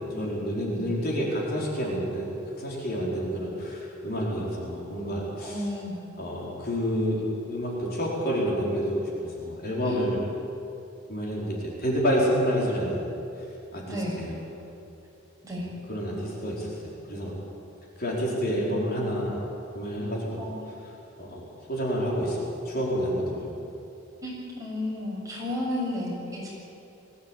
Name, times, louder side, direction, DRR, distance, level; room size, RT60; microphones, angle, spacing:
voice 1, 0.0-2.3 2.6-5.7 6.2-9.1 9.4-10.2 11.1-13.1 13.7-13.8 14.1-14.4 15.9-16.7 17.1-17.3 18.0-19.4 19.7-20.4 21.2-23.7, equal, 50° left, -4 dB, 4.9 m, -28 dB
voice 2, 5.4-6.0 9.8-10.0 13.9-14.2 15.4-15.7 20.4-20.6 24.2-26.5, left 1 dB, 15° right, -5 dB, 7.0 m, -33 dB
21.5 x 16.0 x 9.1 m, 2.8 s
head